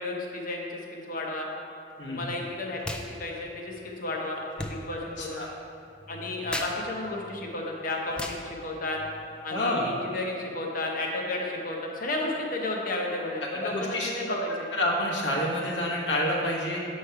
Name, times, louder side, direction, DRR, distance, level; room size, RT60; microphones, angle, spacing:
voice 1, 0.0-1.5 2.1-5.4 6.1-9.0 9.4-14.7, left 2 dB, 50° left, -1 dB, 0.9 m, -33 dB
sound 1, 2.8-3.1 3.3-9.5, left 1 dB, 5° left, 0.4 m, -40 dB
voice 2, 4.9-5.5 9.5-9.9 13.4-14.4 14.7-16.8, left 1 dB, 85° left, -4 dB, 1.3 m, -29 dB
7.7 x 3.2 x 5.7 m, 2.5 s
head